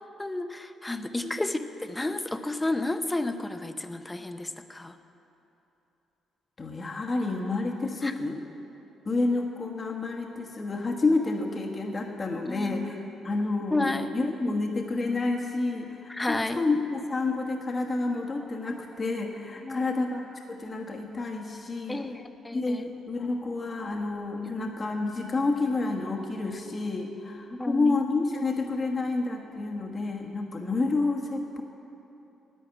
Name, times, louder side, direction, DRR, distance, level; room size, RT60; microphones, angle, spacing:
voice 1, 0.0-5.0 8.0-8.1 12.4-13.0 13.7-14.1 16.1-16.6 19.6-19.9 21.9-22.9 24.4-24.7 27.5-28.0, left 2 dB, 15° left, 9 dB, 0.7 m, -32 dB
voice 2, 6.6-8.4 9.0-20.2 20.5-22.0 22.5-31.6, left 3 dB, 35° left, 1 dB, 1.3 m, -29 dB
11.0 x 9.1 x 8.8 m, 3.0 s
cardioid pair, 90°, 0 cm